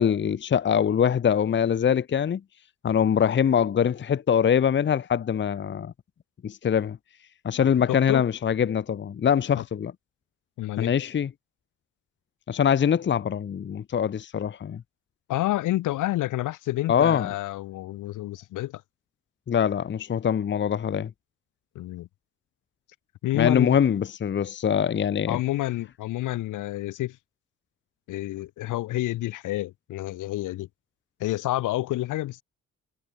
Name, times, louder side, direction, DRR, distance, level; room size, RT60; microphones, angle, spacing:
voice 1, 0.0-2.4 2.8-5.9 6.4-7.0 7.4-9.9 10.8-11.3 12.5-14.8 16.9-17.3 19.5-21.1 23.3-25.4, left 8 dB, 40° left, 0.9 m, -23 dB
voice 2, 7.9-8.2 9.5-9.6 10.6-10.9 15.3-18.8 21.7-22.1 23.2-23.8 25.3-27.2 28.1-30.7 31.2-32.4, left 16 dB, 90° left, 2.8 m, -29 dB
cardioid pair, 90°, 30 cm